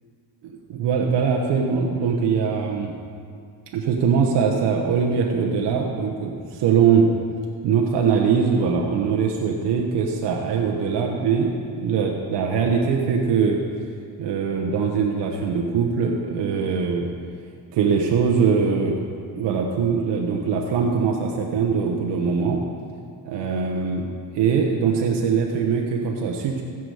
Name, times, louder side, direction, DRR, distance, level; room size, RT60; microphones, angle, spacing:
voice 1, 0.4-2.9 3.7-7.1 7.6-13.6 14.2-17.1 17.7-19.0 19.3-22.6 23.2-24.1 24.3-26.6, right 6 dB, 85° right, 1 dB, 1.0 m, -22 dB
15.5 x 6.0 x 4.8 m, 2.3 s
cardioid pair, 105°, 41 cm